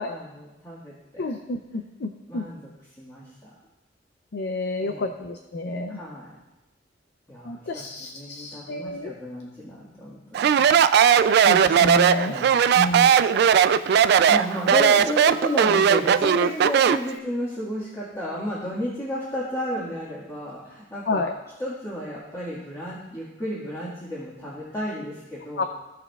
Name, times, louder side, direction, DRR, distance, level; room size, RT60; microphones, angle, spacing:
voice 1, 0.0-1.3 2.3-2.7 3.0-3.5 4.8-5.1 5.9-6.3 7.3-10.7 12.1-12.5 14.3-21.3 21.6-25.6, equal, 20° left, -9 dB, 1.7 m, -32 dB
voice 2, 1.2-2.5 4.3-6.0 7.5-9.1 11.5-12.4 12.8-13.1 21.1-21.3 25.6-25.7, left 2 dB, 65° left, 6 dB, 0.5 m, -29 dB
Speech, 10.3-17.1, right 8 dB, 60° right, 0.3 m, -18 dB
16.0 x 6.0 x 2.3 m, 1.0 s
head